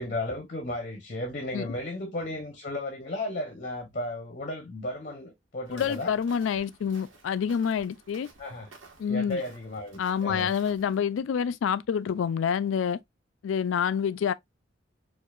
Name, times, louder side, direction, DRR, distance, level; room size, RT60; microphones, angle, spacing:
voice 1, 0.0-6.1 8.4-8.7 9.1-10.5, left 1 dB, 40° left, 0.7 m, -34 dB
voice 2, 5.7-8.3 9.0-9.4 10.0-13.0 13.4-14.3, left 7 dB, 80° left, 0.3 m, -27 dB
Walk footsteps, 5.7-11.0, right 3 dB, 85° right, 1.2 m, -53 dB
4.5 x 2.4 x 2.3 m
head